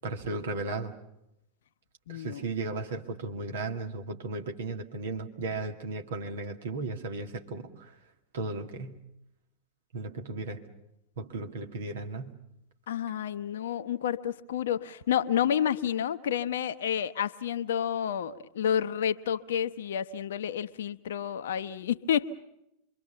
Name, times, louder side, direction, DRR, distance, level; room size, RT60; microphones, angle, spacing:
voice 1, 0.0-0.9 2.1-7.9 8.3-9.0 9.9-10.6 11.2-12.3, right 3 dB, 60° right, 4 dB, 2.1 m, -35 dB
voice 2, 2.1-2.5 12.9-22.3, left 9 dB, 60° left, 12 dB, 0.8 m, -30 dB
26.5 x 23.5 x 7.0 m, 0.85 s
figure-of-eight pair, 90°, 0 cm